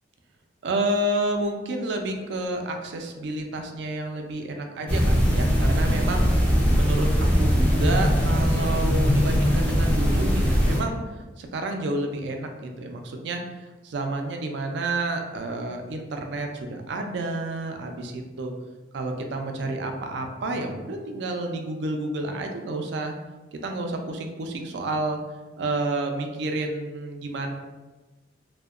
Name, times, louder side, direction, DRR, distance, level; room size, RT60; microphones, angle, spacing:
voice 1, 0.6-11.0 11.4-13.4 13.8-18.5 18.9-23.1 23.5-25.2 25.6-27.5, right 2 dB, 65° right, 4 dB, 0.3 m, -30 dB
sound 1, 4.9-10.8, equal, 5° left, 0.4 m, -21 dB
2.7 x 2.1 x 2.3 m, 1.2 s
head